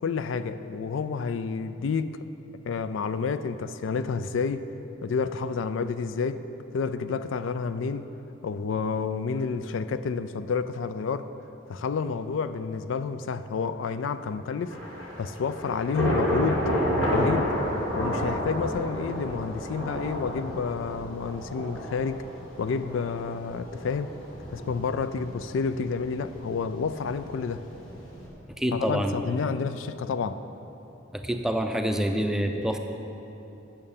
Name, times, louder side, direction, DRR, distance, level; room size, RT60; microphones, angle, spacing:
voice 1, 0.0-2.2 2.6-4.7 5.0-6.4 6.7-8.1 8.4-11.3 11.7-14.8 15.2-16.6 17.1-17.5 17.9-22.3 22.6-24.1 24.5-27.6 28.7-30.4, left 5 dB, 70° left, 12 dB, 0.4 m, -29 dB
Thunder / Rain, 14.7-28.3, equal, 85° left, 2.1 m, -31 dB
voice 2, 28.6-29.6 31.1-32.8, equal, 5° right, 4 dB, 0.5 m, -27 dB
8.8 x 6.4 x 7.1 m, 3.0 s
head